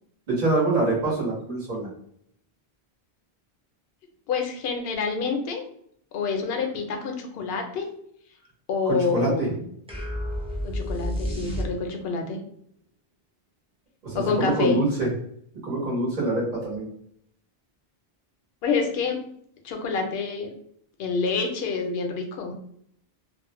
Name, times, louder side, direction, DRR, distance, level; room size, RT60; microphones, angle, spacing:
voice 1, 0.3-1.9 8.9-9.5 14.0-15.1 15.6-16.9, right 2 dB, 50° right, -6 dB, 1.1 m, -25 dB
voice 2, 4.3-5.6 6.1-7.9 8.7-9.6 10.6-12.4 14.1-14.8 18.6-19.2 19.6-20.5 21.0-22.5, left 4 dB, 75° left, 4 dB, 0.8 m, -27 dB
sound 1, 9.9-12.2, equal, 10° right, 0.4 m, -30 dB
2.5 x 2.0 x 2.9 m, 0.67 s
omnidirectional pair, 1.0 m